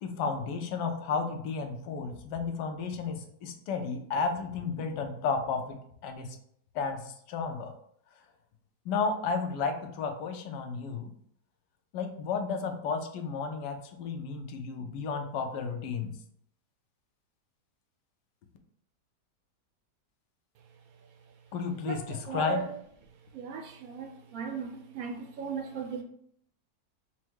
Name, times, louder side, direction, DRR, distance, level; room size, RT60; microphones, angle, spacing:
voice 1, 0.0-5.8 6.0-6.4 6.7-7.7 8.8-11.1 11.9-16.1 21.5-22.7, left 5 dB, 80° left, 1.2 m, -33 dB
voice 2, 21.9-22.7 23.3-26.0, right 6 dB, 70° right, 0.9 m, -37 dB
4.4 x 2.1 x 4.5 m
omnidirectional pair, 1.8 m